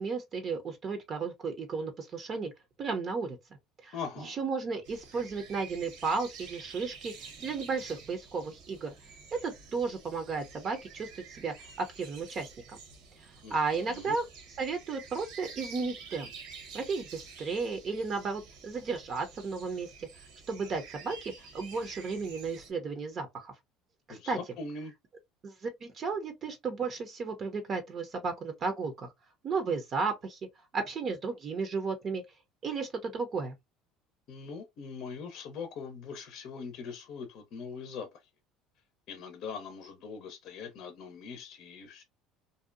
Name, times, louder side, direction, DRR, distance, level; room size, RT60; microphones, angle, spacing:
voice 1, 0.0-2.5 2.8-3.4 3.8-3.9 4.2-7.1 7.4-8.9 9.3-12.8 13.5-14.2 14.6-16.3 16.7-20.1 20.5-23.5 24.1-24.4 25.4-29.1 29.4-30.4 30.7-32.2 32.6-33.5, right 4 dB, 40° right, 0.6 m, -34 dB
voice 2, 3.9-4.4 13.4-14.2 24.1-24.9 34.3-38.1 39.1-42.0, left 5 dB, 60° left, 0.6 m, -41 dB
sound 1, 4.8-22.7, right 5 dB, 75° right, 1.0 m, -49 dB
2.6 x 2.2 x 2.4 m
supercardioid pair, 95°, 0 cm